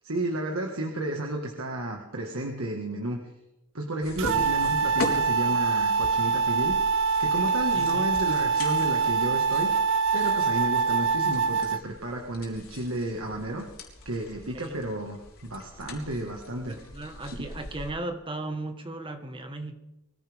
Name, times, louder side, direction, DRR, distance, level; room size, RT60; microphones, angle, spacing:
voice 1, 0.0-3.2 3.7-6.8 7.2-9.7 10.1-13.7 14.1-16.8, right 1 dB, 85° right, 1 dB, 1.9 m, -32 dB
sound 1, 4.0-17.9, left 2 dB, 80° left, 3.7 m, -41 dB
sound 2, 4.2-11.8, right 5 dB, 65° right, 0.7 m, -24 dB
voice 2, 7.7-8.1 14.5-14.8 16.7-19.7, right 2 dB, 25° right, 6 dB, 1.6 m, -36 dB
23.5 x 15.0 x 3.6 m, 0.92 s
head